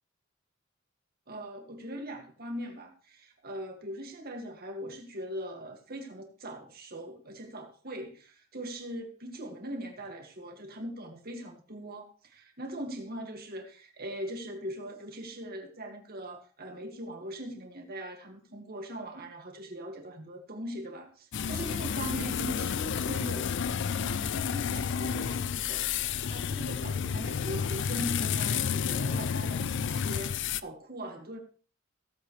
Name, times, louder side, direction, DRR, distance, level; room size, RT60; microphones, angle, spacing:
voice 1, 1.3-23.5 23.9-31.4, equal, 45° right, 2.1 m, -41 dB
sound 1, 21.3-30.6, left 7 dB, 55° left, 0.4 m, -31 dB
17.0 x 7.7 x 3.2 m
head